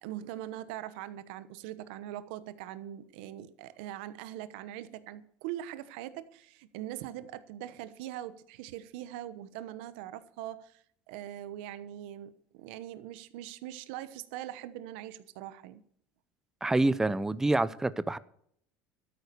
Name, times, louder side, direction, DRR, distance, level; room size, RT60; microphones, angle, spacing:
voice 1, 0.0-15.8, right 12 dB, 80° right, 1.0 m, -42 dB
voice 2, 16.6-18.2, right 2 dB, 10° right, 0.7 m, -27 dB
13.0 x 9.6 x 6.9 m
supercardioid pair, 120°, 5 cm